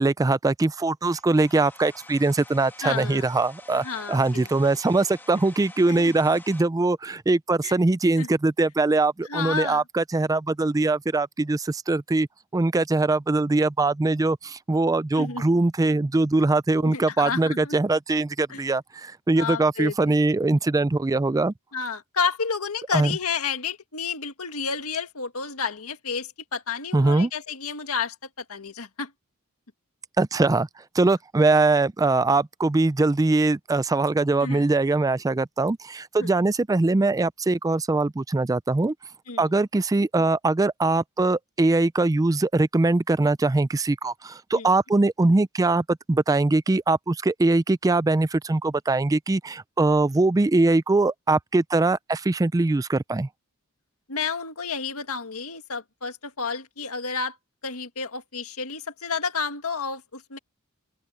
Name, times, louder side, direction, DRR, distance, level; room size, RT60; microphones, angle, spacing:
voice 1, 0.0-12.3 12.5-21.5 22.9-23.1 26.9-27.3 30.2-30.7 30.9-38.9 39.4-53.3, right 2 dB, 15° right, 0.4 m, -22 dB
Domestic sounds home sounds, 1.1-6.6, left 2 dB, 10° left, 2.1 m, -48 dB
voice 2, 2.8-3.3 3.7-4.8 5.4-5.5 5.9-6.1 7.6-7.8 8.2-8.3 9.2-9.8 15.1-15.6 15.9-16.0 16.8-17.7 18.5-18.6 19.4-20.2 21.7-29.1 34.4-34.7 36.2-36.3 39.3-39.5 44.5-44.7 54.1-57.4 57.6-60.4, left 5 dB, 80° left, 1.9 m, -31 dB
open air
head